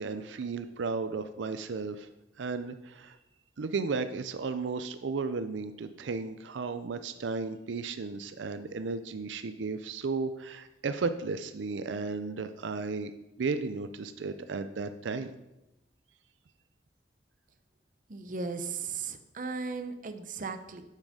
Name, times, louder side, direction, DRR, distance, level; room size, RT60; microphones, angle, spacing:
voice 1, 0.0-2.1 2.4-3.2 3.6-13.1 13.4-15.3, right 4 dB, 85° right, 10 dB, 0.5 m, -34 dB
voice 2, 18.1-20.8, right 4 dB, 45° right, 8 dB, 0.7 m, -36 dB
7.6 x 7.2 x 5.0 m, 0.94 s
head